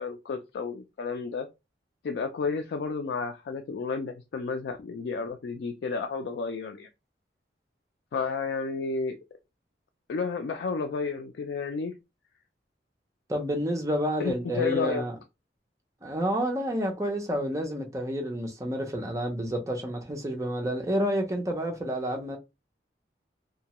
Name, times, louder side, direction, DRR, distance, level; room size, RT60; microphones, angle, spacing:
voice 1, 0.0-1.5 2.0-6.9 8.1-9.2 10.1-11.9 14.2-15.0, left 4 dB, 75° left, 0.3 m, -31 dB
voice 2, 13.3-15.1 16.0-22.4, equal, 20° right, 0.5 m, -29 dB
2.7 x 2.1 x 2.9 m
head